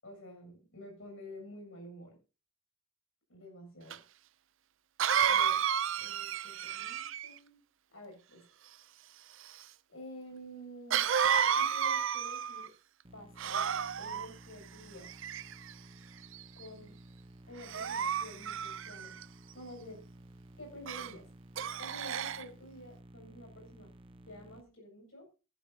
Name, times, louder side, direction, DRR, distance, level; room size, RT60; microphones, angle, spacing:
voice 1, 0.0-2.2 3.3-4.0 5.2-5.6 6.0-7.6 7.9-8.4 9.9-11.1 11.4-12.7 13.1-13.7 14.0-15.1 16.6-16.9 17.5-19.1 19.5-20.0 20.6-21.3 21.8-23.9 24.3-25.3, equal, 65° left, 2 dB, 7.8 m, -49 dB
Cough, 3.9-4.0 5.0-7.4 10.9-12.7 13.4-14.3 15.0-15.7 16.3-16.6 17.6-19.2 20.9-21.1 21.6-22.4, right 8 dB, 60° right, 0.6 m, -31 dB
sound 1, 13.0-24.6, right 1 dB, 25° right, 1.0 m, -55 dB
21.5 x 11.5 x 2.9 m, 0.34 s
head